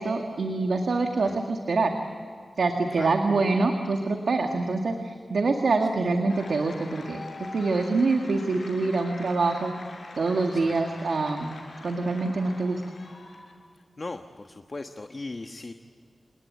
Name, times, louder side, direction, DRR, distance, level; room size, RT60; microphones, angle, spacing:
voice 1, 0.0-1.9 2.6-7.2 7.5-9.7 10.1-11.5 11.8-12.8, right 3 dB, 90° right, 3 dB, 1.9 m, -25 dB
sound 1, 6.3-13.5, left 2 dB, 75° left, 5.4 m, -44 dB
voice 2, 13.7-15.7, left 2 dB, 45° left, 6 dB, 1.3 m, -38 dB
28.0 x 20.0 x 9.6 m, 2.3 s
wide cardioid pair, 70°, 0 cm